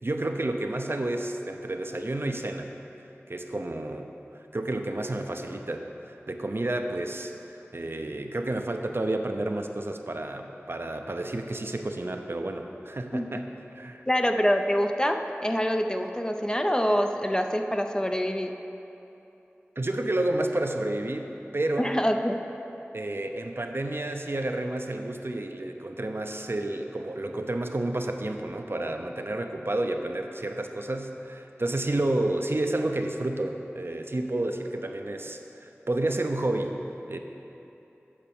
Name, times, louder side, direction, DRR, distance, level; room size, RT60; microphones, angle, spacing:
voice 1, 0.0-2.8 3.3-4.1 4.5-13.5 13.7-14.0 19.8-22.0 22.9-36.7 37.1-37.2, right 1 dB, 60° right, 4 dB, 0.6 m, -30 dB
voice 2, 14.1-18.5 21.8-22.4, equal, 15° left, 5 dB, 0.5 m, -25 dB
8.5 x 5.3 x 7.0 m, 3.0 s
wide cardioid pair, 40°, 5 cm